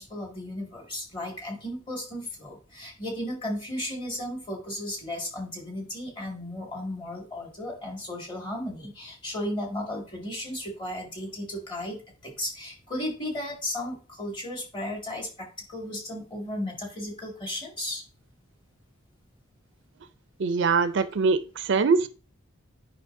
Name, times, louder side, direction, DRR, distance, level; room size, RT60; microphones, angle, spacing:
voice 1, 0.0-18.0, left 1 dB, 25° left, 2.0 m, -35 dB
voice 2, 20.4-22.1, right 4 dB, 60° right, 0.4 m, -23 dB
8.7 x 5.4 x 2.6 m
head